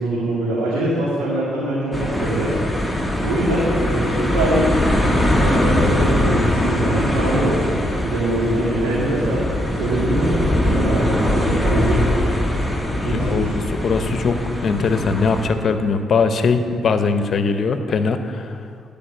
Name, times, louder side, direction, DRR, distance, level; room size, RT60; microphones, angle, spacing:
voice 1, 0.0-2.5 3.2-4.7 5.4-9.4 9.8-12.0 13.0-13.5, right 1 dB, 85° right, -8 dB, 2.4 m, -23 dB
sound 1, 1.9-15.5, left 1 dB, ahead, 1.7 m, -21 dB
voice 2, 12.8-18.5, left 4 dB, 55° left, 9 dB, 0.8 m, -21 dB
11.0 x 5.2 x 7.9 m, 2.3 s
supercardioid pair, 60°, 0 cm